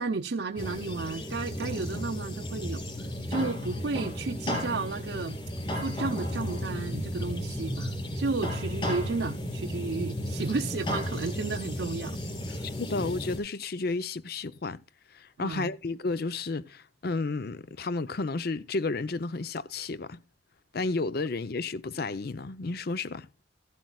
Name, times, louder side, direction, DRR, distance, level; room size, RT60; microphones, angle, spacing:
voice 1, 0.0-5.4 5.8-12.2 12.5-12.6 15.4-15.7, right 3 dB, 70° right, 0.6 m, -33 dB
sound 1, 0.6-13.4, equal, 30° left, 6.3 m, -34 dB
voice 2, 12.8-14.8 15.1-20.2 20.7-23.3, left 3 dB, 55° left, 0.6 m, -32 dB
15.0 x 12.0 x 2.3 m
head